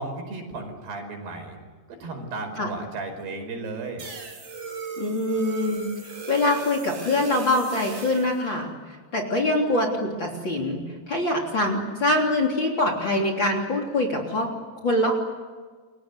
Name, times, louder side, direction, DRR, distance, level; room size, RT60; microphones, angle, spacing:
voice 1, 0.0-1.6 1.9-4.0, right 3 dB, 70° right, 5 dB, 7.1 m, -34 dB
sound 1, 4.0-8.4, right 5 dB, 50° right, 6.0 m, -37 dB
voice 2, 5.0-5.9 6.3-8.7 9.1-14.5 14.8-15.1, left 1 dB, 30° left, 1 dB, 3.7 m, -24 dB
29.5 x 24.0 x 8.2 m, 1.4 s
omnidirectional pair, 4.8 m